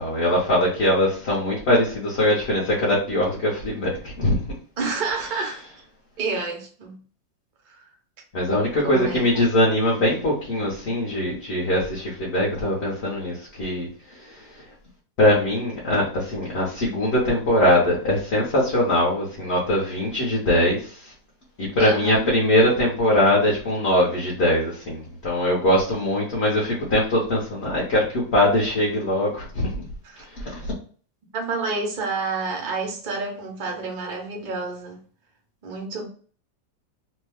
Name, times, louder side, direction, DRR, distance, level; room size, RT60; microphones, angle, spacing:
voice 1, 0.0-4.5 8.3-14.7 15.2-21.1 21.6-29.8 30.2-30.7, left 1 dB, 50° left, 0.9 m, -22 dB
voice 2, 4.8-5.6 6.2-7.0 7.7-7.9 8.8-9.3 21.8-22.2 30.0-30.2 31.3-35.0 35.6-36.1, right 3 dB, 55° right, 0.5 m, -29 dB
3.0 x 2.2 x 3.4 m
omnidirectional pair, 2.0 m